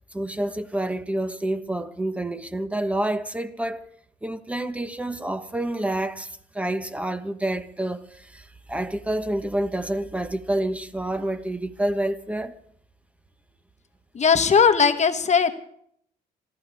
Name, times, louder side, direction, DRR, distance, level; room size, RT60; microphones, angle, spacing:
voice 1, 0.1-3.9 4.2-12.6, right 1 dB, 10° right, 1.2 m, -28 dB
voice 2, 14.1-15.5, left 6 dB, 45° left, 1.2 m, -18 dB
26.5 x 13.5 x 3.5 m
cardioid pair, 95°, 17 cm